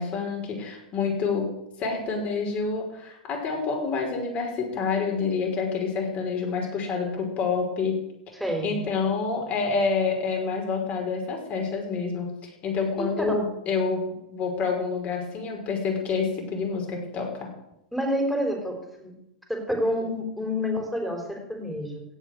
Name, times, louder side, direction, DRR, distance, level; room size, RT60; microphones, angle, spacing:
voice 1, 0.0-8.0 8.6-12.3 12.6-14.0 14.3-17.5, left 5 dB, 35° left, 1 dB, 5.7 m, -28 dB
voice 2, 8.3-8.7 13.0-13.1 17.9-19.1 19.5-22.0, equal, ahead, 2 dB, 4.7 m, -28 dB
17.0 x 7.6 x 7.9 m, 0.85 s
hypercardioid pair, 110°, 4 cm